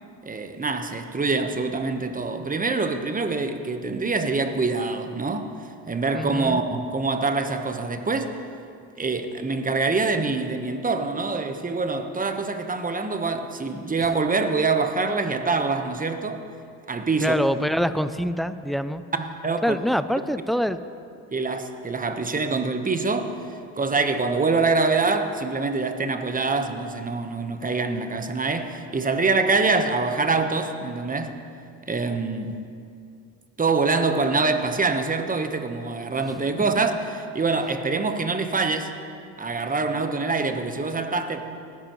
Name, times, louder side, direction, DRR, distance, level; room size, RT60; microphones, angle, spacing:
voice 1, 0.2-5.5 5.9-8.4 9.0-16.4 16.9-17.3 19.4-19.8 21.3-23.4 23.8-31.4 31.9-32.5 33.6-37.0 37.3-38.9 39.4-41.4, right 3 dB, 20° right, 7 dB, 1.1 m, -25 dB
voice 2, 6.1-6.6 14.0-14.1 17.2-19.0 19.6-20.8, equal, ahead, 12 dB, 0.3 m, -25 dB
18.5 x 10.5 x 3.1 m, 2.4 s
supercardioid pair, 70°, 40 cm